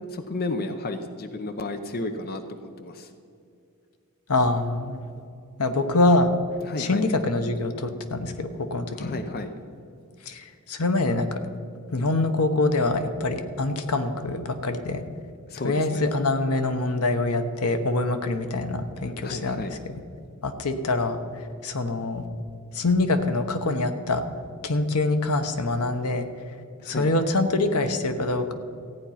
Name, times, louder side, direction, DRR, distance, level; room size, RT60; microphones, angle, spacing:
voice 1, 0.0-3.1 6.6-7.0 8.9-9.5 15.5-16.1 19.2-19.7 26.8-27.1, left 2 dB, 45° left, 8 dB, 0.7 m, -32 dB
voice 2, 4.3-5.0 5.6-6.3 6.8-9.2 10.3-11.3 11.9-15.0 15.6-20.0 20.4-21.2 21.6-22.2 22.7-24.2 24.6-26.3 26.9-28.5, left 2 dB, 85° left, 8 dB, 1.1 m, -25 dB
14.5 x 9.4 x 5.8 m, 2.5 s
head